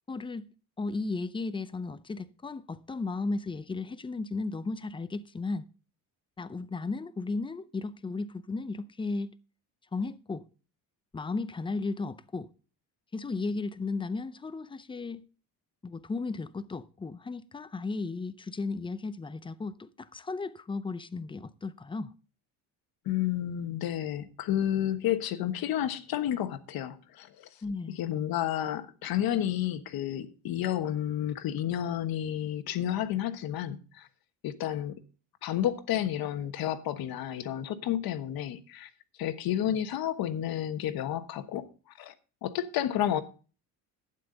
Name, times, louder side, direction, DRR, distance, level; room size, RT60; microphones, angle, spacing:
voice 1, 0.1-0.5 0.8-5.7 6.4-9.3 9.9-10.4 11.1-12.5 13.1-15.2 15.8-22.1 27.6-28.0, left 3 dB, 15° left, 0.5 m, -35 dB
voice 2, 23.0-27.5 27.9-34.1 34.4-35.0 35.4-38.9 39.2-41.7 42.0-42.1 42.4-43.2, left 11 dB, 65° left, 1.3 m, -31 dB
12.0 x 9.2 x 3.9 m
cardioid pair, 135°, 39 cm